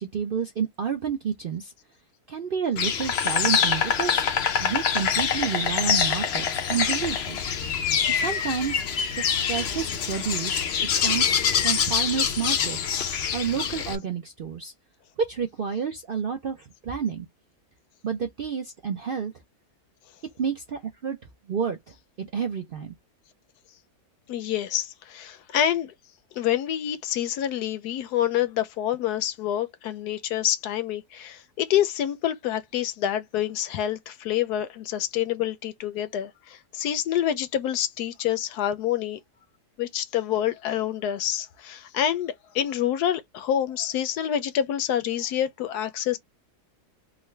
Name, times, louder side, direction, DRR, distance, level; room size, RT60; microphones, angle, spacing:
voice 1, 0.0-1.7 2.3-4.3 4.6-7.4 8.1-8.8 9.1-12.8 13.3-14.7 15.2-17.3 18.0-19.3 20.4-21.2 21.5-21.8 22.2-22.9, right 7 dB, 60° right, 0.5 m, -30 dB
Insect, 2.8-14.0, left 7 dB, 65° left, 0.6 m, -25 dB
voice 2, 24.3-25.9 26.4-39.2 39.8-46.2, left 10 dB, 85° left, 1.2 m, -27 dB
3.8 x 2.2 x 3.2 m
omnidirectional pair, 1.7 m